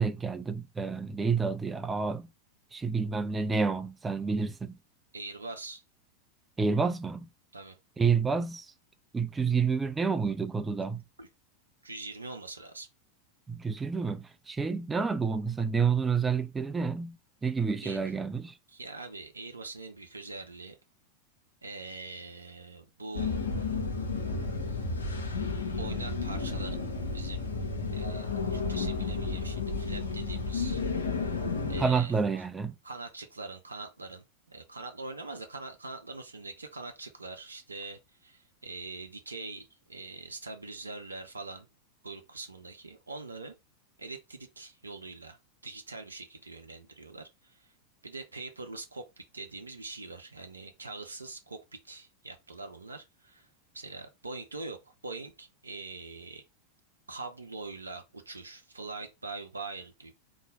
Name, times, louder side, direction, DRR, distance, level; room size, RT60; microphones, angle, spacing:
voice 1, 0.0-2.3 2.7-4.8 6.6-7.3 8.0-8.7 9.1-11.0 13.5-18.5 31.8-32.7, right 5 dB, 15° right, 0.5 m, -29 dB
voice 2, 5.1-5.8 7.5-7.8 11.2-11.3 11.8-12.9 17.8-18.0 18.7-20.8 21.6-23.3 25.7-26.8 27.1-27.5 27.9-30.8 31.1-31.4 31.7-32.4 32.8-41.7 42.0-43.6 44.0-45.4 45.6-47.7 48.0-53.5 53.7-56.4 57.1-60.1, right 3 dB, 75° right, 0.7 m, -43 dB
sound 1, 23.1-31.8, left 4 dB, 75° left, 1.2 m, -32 dB
3.9 x 3.1 x 3.7 m
figure-of-eight pair, 90°, 0 cm